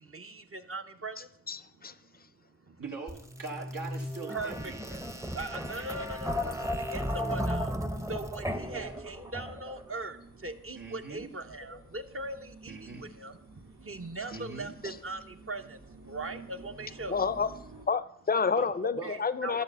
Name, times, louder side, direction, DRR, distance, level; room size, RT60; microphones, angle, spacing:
voice 1, 0.0-1.3 1.8-2.8 4.3-4.7 5.2-7.7 8.1-15.8 16.0-17.2 19.0-19.6, right 2 dB, 40° right, 6 dB, 0.8 m, -40 dB
voice 2, 1.5-1.9 17.1-17.5 17.9-19.6, left 5 dB, 30° left, 15 dB, 0.5 m, -29 dB
voice 3, 2.8-5.0 8.7-9.0 10.7-11.3 12.7-13.1 14.3-14.7 18.6-19.1, right 4 dB, 75° right, -3 dB, 1.6 m, -42 dB
sound 1, 3.1-9.8, equal, 10° right, 0.7 m, -35 dB
sound 2, 7.9-17.9, right 3 dB, 60° right, 1.5 m, -52 dB
12.5 x 4.2 x 6.7 m, 0.73 s
wide cardioid pair, 55°, 33 cm